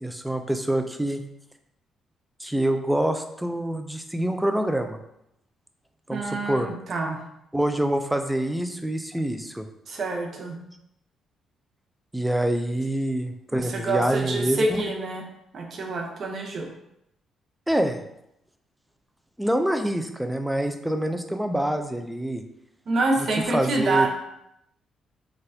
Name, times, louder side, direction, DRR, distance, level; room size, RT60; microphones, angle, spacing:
voice 1, 0.0-1.2 2.4-5.0 6.1-6.7 7.5-9.7 12.1-14.8 17.7-18.0 19.4-22.4 23.5-24.1, right 1 dB, 5° right, 6 dB, 0.4 m, -26 dB
voice 2, 6.1-7.2 9.9-10.6 13.5-15.3 15.5-16.7 22.9-24.1, right 2 dB, 55° right, 2 dB, 0.7 m, -27 dB
4.1 x 2.4 x 2.6 m, 0.80 s
cardioid pair, 90°, 0 cm